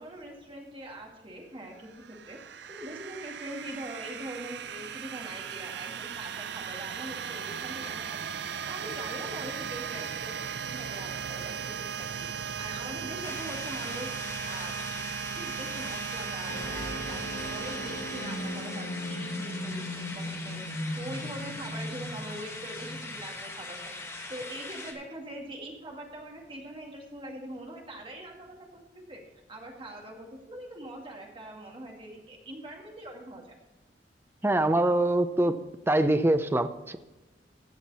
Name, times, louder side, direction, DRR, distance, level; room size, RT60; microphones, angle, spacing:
voice 1, 0.0-2.4 2.7-10.3 10.7-14.8 15.4-29.2 29.5-33.5, right 1 dB, 30° right, 0 dB, 2.2 m, -43 dB
sound 1, 1.8-19.5, right 7 dB, 65° right, 0.5 m, -37 dB
sound 2, 13.2-24.9, left 2 dB, 15° left, 1.4 m, -41 dB
sound 3, 16.5-24.2, left 1 dB, 45° left, 1.2 m, -38 dB
voice 2, 34.4-35.5 35.9-37.0, right 1 dB, 15° right, 10 dB, 0.5 m, -24 dB
15.5 x 6.5 x 4.2 m, 1.1 s
head